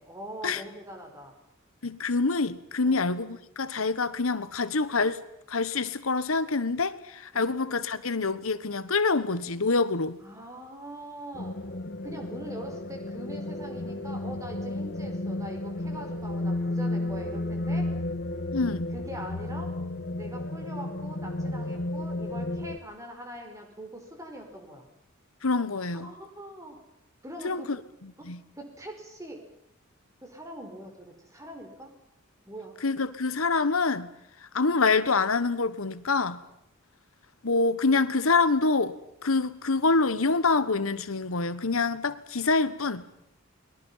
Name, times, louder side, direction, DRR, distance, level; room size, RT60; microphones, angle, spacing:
voice 1, 0.0-1.4 2.8-3.0 7.3-7.5 10.2-11.6 12.0-17.9 18.9-19.7 20.1-24.9 25.9-26.8 27.2-27.7 28.6-29.4 30.2-31.9 32.5-32.8, right 1 dB, 15° right, 5.1 m, -42 dB
voice 2, 1.8-5.2 5.5-10.2 18.5-18.9 25.4-26.1 27.4-27.8 28.2-28.4 32.8-34.1 34.5-36.4 37.4-43.0, left 3 dB, 85° left, 1.3 m, -26 dB
sound 1, 11.3-22.8, left 1 dB, 55° left, 1.5 m, -33 dB
30.0 x 22.0 x 5.7 m
head